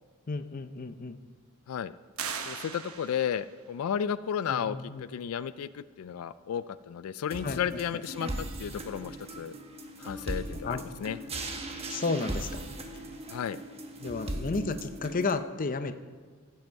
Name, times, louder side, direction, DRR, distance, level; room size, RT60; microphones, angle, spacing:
voice 1, 0.3-1.2 4.5-5.1 7.4-7.8 10.6-10.8 11.9-12.6 14.0-15.9, left 3 dB, 40° left, 11 dB, 0.6 m, -32 dB
sound 1, 2.2-3.5, right 7 dB, 90° right, 0.9 m, -38 dB
voice 2, 2.5-9.6 10.0-11.2 13.3-13.6, left 8 dB, 85° left, 16 dB, 0.3 m, -33 dB
sound 2, 7.3-15.3, right 1 dB, 30° right, 1.1 m, -38 dB
16.0 x 7.7 x 4.6 m, 1.5 s
head